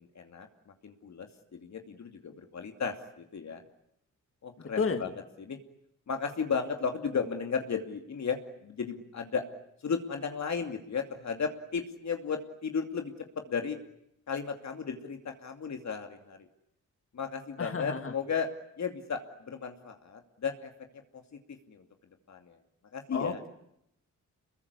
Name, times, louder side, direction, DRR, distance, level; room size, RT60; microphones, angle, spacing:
voice 1, 0.0-3.6 4.4-5.6 6.1-9.4 9.8-13.8 14.3-16.5 17.1-18.5 18.8-20.7 21.1-21.2 21.7-21.8 22.3-22.6 22.9-23.4, left 6 dB, 65° left, 5 dB, 2.7 m, -35 dB
voice 2, 4.6-5.0 17.6-18.1 23.1-23.5, left 5 dB, 45° left, 7 dB, 2.8 m, -32 dB
27.5 x 22.0 x 9.7 m, 0.75 s
cardioid pair, 90°, 30 cm